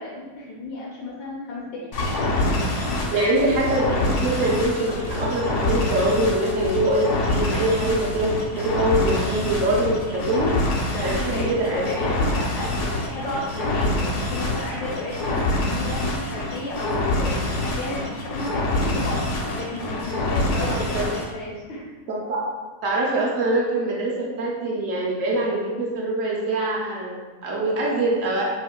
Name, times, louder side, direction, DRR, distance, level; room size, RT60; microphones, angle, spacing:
voice 1, 0.0-2.2 3.1-3.3 8.5-8.6 10.9-11.5 11.8-21.8, left 1 dB, 80° left, -5 dB, 1.2 m, -33 dB
sound 1, 1.9-21.3, left 2 dB, 65° left, 0.8 m, -26 dB
voice 2, 3.1-10.5 11.0-11.8 20.7-21.1 22.1-22.4 22.8-28.4, right 1 dB, 65° right, -4 dB, 0.9 m, -24 dB
4.3 x 2.1 x 2.2 m, 1.3 s
omnidirectional pair, 1.7 m